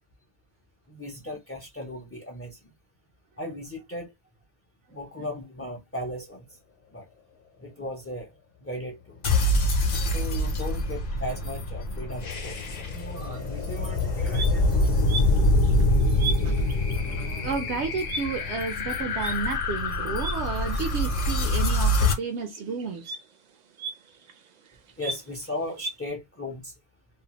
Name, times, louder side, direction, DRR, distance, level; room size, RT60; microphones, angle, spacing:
voice 1, 0.9-2.6 3.4-4.1 4.9-6.4 6.9-7.0 7.6-8.3 8.6-9.2 10.0-14.9 25.0-26.7, left 1 dB, 20° left, 0.4 m, -37 dB
sound 1, 9.2-22.1, left 1 dB, 55° left, 0.8 m, -25 dB
sound 2, 13.3-13.5 14.0-21.3 21.6-26.0, right 3 dB, 55° right, 0.5 m, -39 dB
voice 2, 17.4-23.1, right 5 dB, 85° right, 0.9 m, -31 dB
2.7 x 2.1 x 2.8 m
omnidirectional pair, 1.1 m